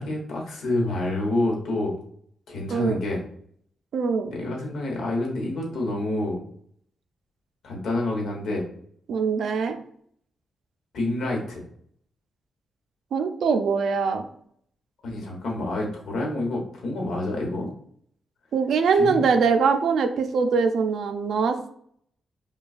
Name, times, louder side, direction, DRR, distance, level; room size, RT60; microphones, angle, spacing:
voice 1, 0.0-2.0 2.5-3.2 4.2-6.4 7.6-8.6 10.9-11.6 15.0-17.7 19.0-19.2, left 2 dB, 80° left, 0 dB, 1.0 m, -28 dB
voice 2, 3.9-4.3 9.1-9.8 13.1-14.3 18.5-21.7, right 5 dB, 65° right, 7 dB, 0.4 m, -22 dB
5.2 x 2.3 x 2.4 m, 0.64 s
wide cardioid pair, 170°, 0 cm